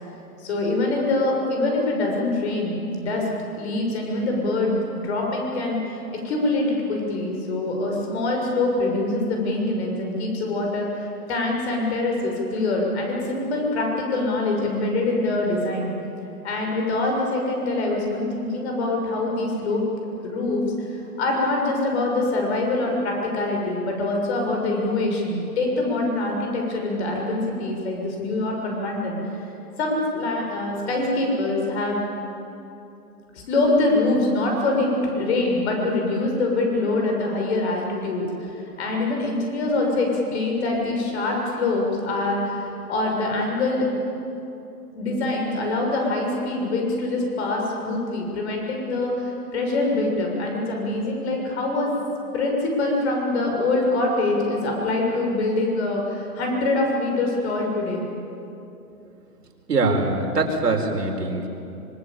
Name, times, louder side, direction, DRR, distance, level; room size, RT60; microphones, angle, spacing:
voice 1, 0.4-3.3 3.5-4.7 5.0-15.9 16.4-29.2 29.8-32.1 33.3-43.9 44.9-51.9 52.3-58.0, left 2 dB, 40° left, 1 dB, 6.8 m, -24 dB
voice 2, 59.7-61.5, right 3 dB, 75° right, 2 dB, 4.7 m, -23 dB
25.5 x 22.0 x 8.8 m, 2.9 s
hypercardioid pair, 150°, 48 cm